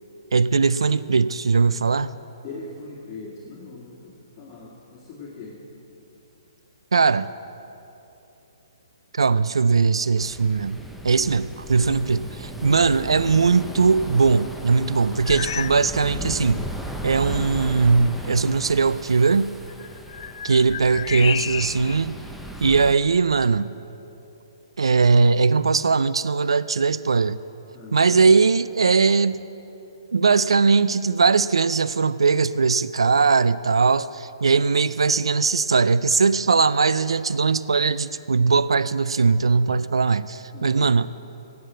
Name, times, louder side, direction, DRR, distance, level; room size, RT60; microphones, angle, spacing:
voice 1, 0.3-2.1 6.9-7.3 9.1-10.8 11.0-16.6 17.0-19.5 20.4-22.2 22.6-23.7 24.8-27.4 27.9-29.4 30.1-41.1, right 4 dB, 85° right, 16 dB, 0.3 m, -20 dB
voice 2, 2.4-5.6 27.7-28.2 40.5-41.1, left 3 dB, 25° left, -5 dB, 2.1 m, -41 dB
sound 1, 10.2-22.9, right 1 dB, ahead, 0.7 m, -36 dB
sound 2, 15.2-15.9 16.2-16.5 17.2-17.3 19.7-22.0 22.6-23.6, left 9 dB, 55° left, 0.4 m, -33 dB
13.0 x 8.1 x 7.6 m, 2.9 s
hypercardioid pair, 140°, 3 cm